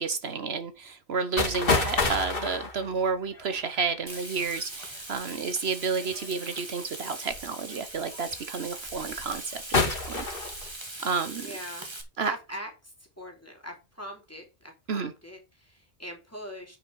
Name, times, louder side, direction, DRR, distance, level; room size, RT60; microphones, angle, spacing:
voice 1, 0.0-9.4 9.8-10.2 11.0-11.5 12.2-12.3 14.9-15.1, right 5 dB, 65° right, 1.2 m, -31 dB
sound 1, 1.4-4.9 6.0-6.5 7.3-7.4 8.0-8.3 8.9-9.4 9.7-10.7, left 3 dB, 55° left, 2.4 m, -28 dB
Frying (food), 4.1-12.0, right 2 dB, 25° right, 1.8 m, -41 dB
voice 2, 11.4-11.9 12.2-16.8, equal, 15° left, 3.2 m, -42 dB
9.2 x 5.8 x 4.6 m
omnidirectional pair, 1.1 m